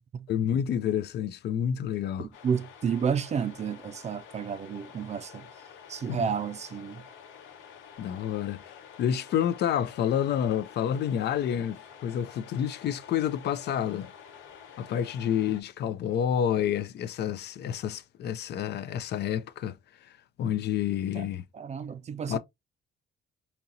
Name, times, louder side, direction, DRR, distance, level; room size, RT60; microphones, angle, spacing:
voice 1, 0.3-2.3 6.1-6.2 8.0-14.1 14.8-21.4 22.3-22.4, left 9 dB, 55° left, 0.4 m, -29 dB
voice 2, 2.2-5.5 5.9-7.1 21.1-21.3 21.5-22.4, right 7 dB, 35° right, 0.4 m, -31 dB
sound 1, 2.3-15.6, left 8 dB, 75° left, 1.0 m, -49 dB
4.1 x 2.8 x 2.6 m
cardioid pair, 130°, 20 cm